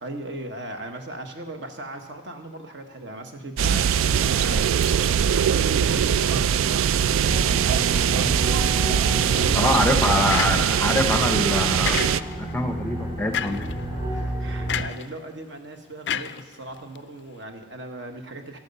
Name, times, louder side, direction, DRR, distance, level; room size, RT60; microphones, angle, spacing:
voice 1, 0.0-7.2 9.0-10.3 14.1-18.6, right 1 dB, 60° right, 5 dB, 1.3 m, -38 dB
sound 1, 3.6-12.2, right 8 dB, 85° right, 0.3 m, -21 dB
sound 2, 7.2-14.8, equal, 25° right, 5.9 m, -31 dB
voice 2, 9.5-13.7, left 1 dB, 10° left, 6 dB, 0.6 m, -24 dB
sound 3, 10.3-10.9 11.8-12.5 13.3-13.7 14.7-15.1 16.1-17.0, left 9 dB, 55° left, 0.4 m, -30 dB
12.5 x 12.0 x 5.4 m, 1.2 s
head